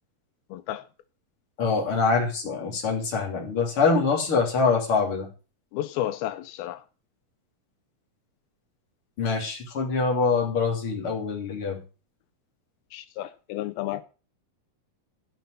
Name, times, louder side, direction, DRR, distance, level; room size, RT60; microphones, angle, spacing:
voice 1, 0.5-0.9 5.7-6.8 12.9-14.0, left 13 dB, 85° left, 2.7 m, -32 dB
voice 2, 1.6-5.3 9.2-11.8, left 4 dB, 35° left, 4.0 m, -24 dB
15.0 x 5.8 x 8.1 m
omnidirectional pair, 4.3 m